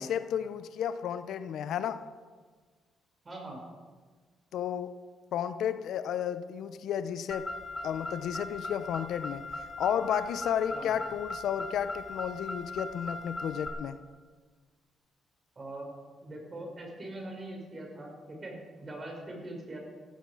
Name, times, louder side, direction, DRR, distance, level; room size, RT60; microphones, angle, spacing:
voice 1, 0.0-2.1 4.5-5.0 5.3-7.5 7.8-9.4 9.8-14.0, left 9 dB, 75° left, 12 dB, 0.7 m, -32 dB
voice 2, 3.2-3.6 10.7-11.0 15.6-15.9 16.2-19.8, right 1 dB, 35° right, 0 dB, 5.8 m, -42 dB
Car, 7.3-13.7, left 2 dB, 20° left, 3.4 m, -39 dB
15.5 x 15.0 x 4.9 m, 1.5 s
cardioid pair, 90°, 0 cm